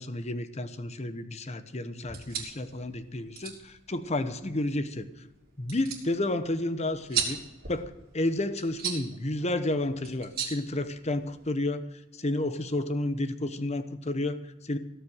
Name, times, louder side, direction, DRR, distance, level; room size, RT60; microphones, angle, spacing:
voice 1, 0.0-5.1 5.6-7.4 7.7-14.8, left 1 dB, 35° left, 11 dB, 1.0 m, -31 dB
sound 1, 2.0-11.5, right 7 dB, 50° right, 4.4 m, -38 dB
17.5 x 6.8 x 9.4 m, 1.1 s
head